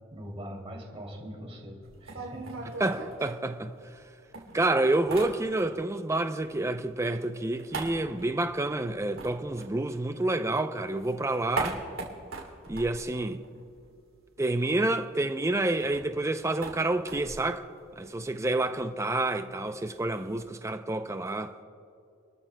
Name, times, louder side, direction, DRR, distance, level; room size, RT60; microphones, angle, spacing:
voice 1, 0.1-2.5, equal, 30° right, 2.8 m, -42 dB
sound 1, 1.8-4.0 4.3-6.0 6.2-10.4 10.7-14.0 14.3-14.4 14.6-20.4, right 3 dB, 85° right, 2.8 m, -41 dB
voice 2, 2.8-3.7 4.5-11.8 12.7-13.4 14.4-17.6 18.0-21.5, right 2 dB, 15° right, 0.5 m, -28 dB
27.5 x 13.5 x 2.2 m
head